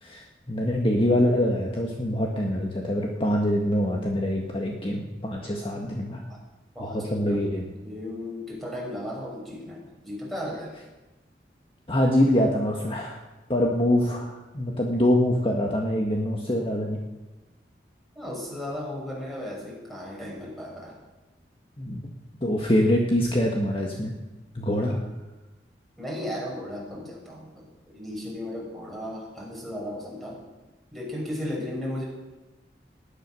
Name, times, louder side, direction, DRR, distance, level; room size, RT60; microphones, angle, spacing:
voice 1, 0.0-6.2 6.8-7.6 11.9-13.2 13.5-17.0 21.8-22.0 22.4-24.1 24.5-25.0, left 1 dB, 30° left, 0 dB, 1.6 m, -24 dB
voice 2, 6.7-7.5 7.8-10.7 18.1-21.0 26.0-30.4 30.9-32.0, left 1 dB, ahead, -3 dB, 5.6 m, -35 dB
20.0 x 10.5 x 6.3 m, 1.1 s
head